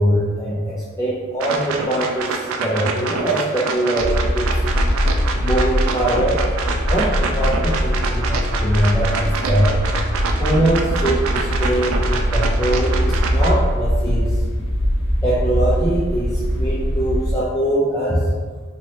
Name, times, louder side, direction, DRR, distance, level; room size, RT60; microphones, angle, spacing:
voice 1, 0.0-4.6 5.4-6.4 6.9-9.8 10.4-14.4 15.2-18.3, right 1 dB, 15° left, -9 dB, 0.4 m, -22 dB
sound 1, 1.4-13.5, right 4 dB, 90° right, 0.4 m, -26 dB
sound 2, 4.0-17.3, equal, 70° left, 0.5 m, -21 dB
3.1 x 2.9 x 2.7 m, 1.5 s
head